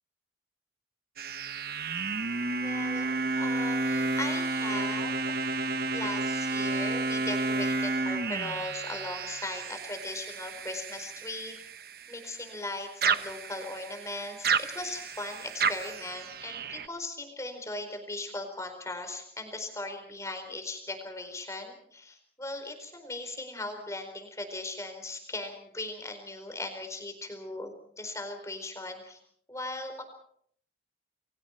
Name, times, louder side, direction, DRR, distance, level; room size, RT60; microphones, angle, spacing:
sound 1, 1.2-12.7 13.0-16.9, right 3 dB, 55° right, 1.1 m, -31 dB
voice 1, 2.6-3.1 3.4-5.4 5.9-11.6 12.1-29.2 29.5-30.0, left 2 dB, 15° left, 6 dB, 4.4 m, -38 dB
30.0 x 23.5 x 4.6 m, 0.65 s
head